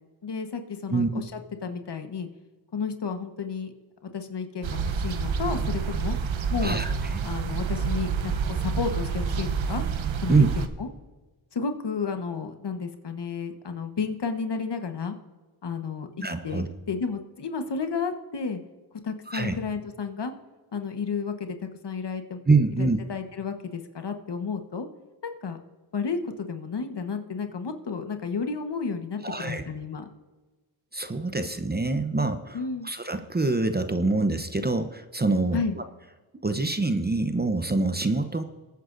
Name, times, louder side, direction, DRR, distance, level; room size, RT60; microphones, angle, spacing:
voice 1, 0.2-2.3 2.7-3.7 4.0-6.2 6.5-6.8 7.2-9.8 10.2-10.9 11.5-15.2 15.6-16.1 16.4-18.6 19.0-20.3 20.7-22.4 22.8-24.9 25.2-25.6 25.9-30.1 32.5-32.9 35.5-35.8, left 5 dB, 55° left, 6 dB, 1.3 m, -32 dB
voice 2, 0.9-1.2 6.6-7.3 10.3-10.5 16.2-16.7 19.3-19.5 22.5-23.0 29.2-29.6 30.9-35.6 36.4-38.4, right 3 dB, 20° right, 9 dB, 0.8 m, -25 dB
sound 1, 4.6-10.7, right 6 dB, 70° right, 1.0 m, -28 dB
21.5 x 9.3 x 2.6 m, 1.3 s
cardioid pair, 55°, 48 cm